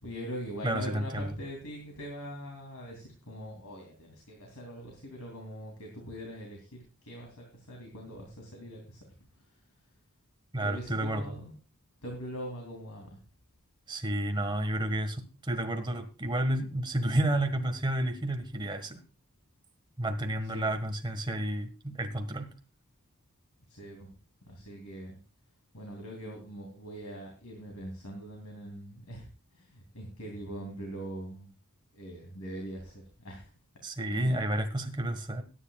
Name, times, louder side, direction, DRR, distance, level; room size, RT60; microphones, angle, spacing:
voice 1, 0.0-9.0 10.6-11.5 12.0-13.1 14.3-14.4 14.7-14.9 20.5-20.7 23.7-24.1 24.4-25.1 25.7-29.3 29.5-31.5 31.9-33.5 34.1-34.4, equal, 75° left, 1 dB, 3.0 m, -42 dB
voice 2, 0.6-1.3 10.5-11.3 13.9-19.0 20.0-22.5 33.8-35.4, right 1 dB, 20° right, 6 dB, 1.6 m, -31 dB
21.0 x 10.0 x 2.4 m, 0.34 s
head